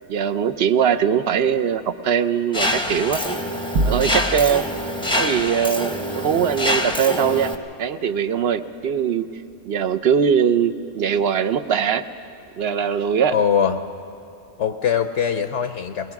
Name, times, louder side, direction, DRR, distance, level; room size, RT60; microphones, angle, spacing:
voice 1, 0.1-3.2 3.8-4.6 5.2-7.5 7.8-9.3 9.6-12.0 12.6-13.4, right 7 dB, 60° right, 9 dB, 0.7 m, -21 dB
Mechanisms, 2.5-7.5, left 1 dB, 5° left, 0.7 m, -25 dB
sound 1, 3.7-4.7, right 2 dB, 80° right, 1.2 m, -23 dB
voice 2, 13.3-13.8 14.6-16.1, left 8 dB, 65° left, 7 dB, 0.9 m, -22 dB
22.5 x 20.0 x 5.9 m, 2.8 s
omnidirectional pair, 1.4 m